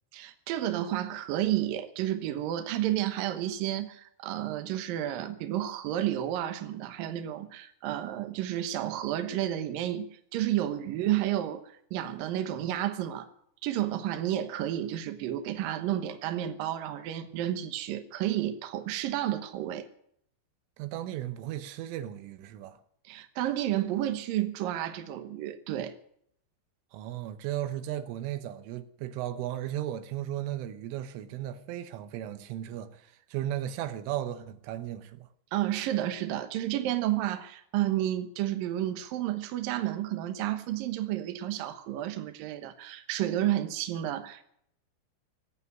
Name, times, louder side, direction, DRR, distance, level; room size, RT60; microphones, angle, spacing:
voice 1, 0.1-11.6 11.9-13.3 13.6-19.9 23.1-25.9 35.5-44.4, right 12 dB, 70° right, 2.3 m, -31 dB
voice 2, 20.8-22.8 26.9-35.3, right 12 dB, 85° right, 3.5 m, -35 dB
18.0 x 8.5 x 9.4 m
omnidirectional pair, 5.6 m